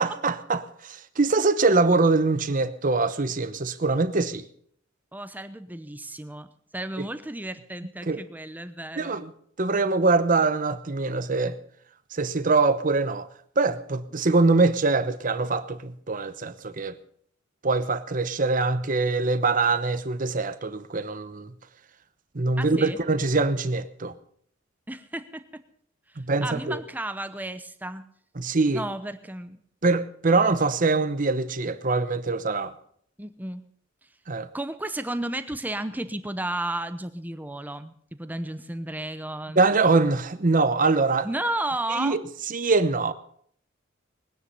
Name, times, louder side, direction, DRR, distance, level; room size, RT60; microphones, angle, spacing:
voice 1, 0.0-4.4 8.1-8.2 9.0-9.3 9.6-11.6 12.1-13.3 13.6-17.0 17.6-21.5 22.3-24.1 26.2-26.8 28.4-28.8 29.8-32.7 34.3-34.5 39.6-41.3 41.9-42.2 42.5-43.1, right 3 dB, 40° right, 0.9 m, -23 dB
voice 2, 5.1-6.5 6.7-9.2 22.6-23.0 24.9-25.5 26.4-28.0 28.7-29.6 33.2-33.7 34.5-39.6 41.2-42.2, right 1 dB, 10° right, 0.8 m, -33 dB
21.0 x 9.9 x 5.5 m
head